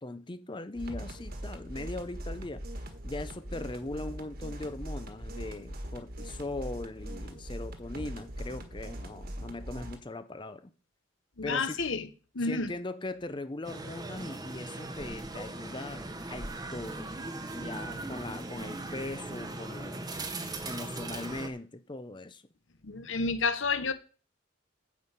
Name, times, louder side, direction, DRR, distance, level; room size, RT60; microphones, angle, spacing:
voice 1, 0.0-2.6 3.0-10.7 11.4-11.8 12.4-17.1 17.5-20.1 20.6-22.4, left 2 dB, 25° left, 0.6 m, -40 dB
sound 1, 0.7-10.0, equal, 50° right, 1.6 m, -41 dB
voice 2, 11.4-12.1 12.3-12.7 22.8-23.9, left 4 dB, 70° left, 1.1 m, -30 dB
sound 2, 13.6-21.5, right 2 dB, 20° right, 1.1 m, -39 dB
9.5 x 5.5 x 8.2 m
head